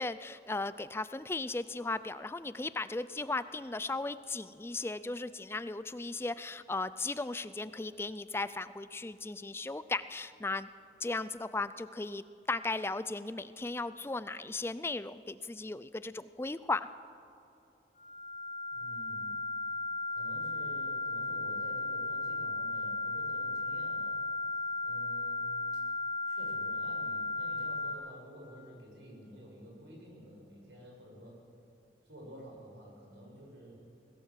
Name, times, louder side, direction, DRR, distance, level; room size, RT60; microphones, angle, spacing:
voice 1, 0.0-10.7 11.0-16.9, left 3 dB, 15° left, 14 dB, 0.3 m, -36 dB
sound 1, 18.0-27.9, left 3 dB, 45° left, 3.6 m, -35 dB
voice 2, 18.7-19.4 20.1-24.2 24.8-25.6 26.3-31.4 32.0-33.7, equal, 90° right, -1 dB, 6.9 m, -51 dB
20.5 x 17.0 x 7.5 m, 2.8 s
head